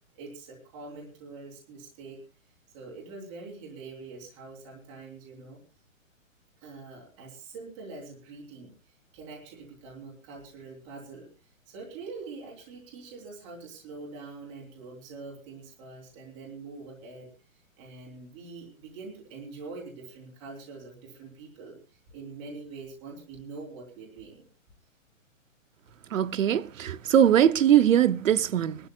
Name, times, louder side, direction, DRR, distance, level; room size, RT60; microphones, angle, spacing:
voice 1, 0.1-2.2 2.7-5.6 6.6-8.7 9.1-11.3 11.7-17.3 17.8-21.7 22.1-24.4, right 3 dB, 20° right, 3.2 m, -44 dB
voice 2, 26.1-28.8, right 10 dB, 70° right, 0.8 m, -21 dB
26.0 x 12.5 x 2.2 m
hypercardioid pair, 175°, 40 cm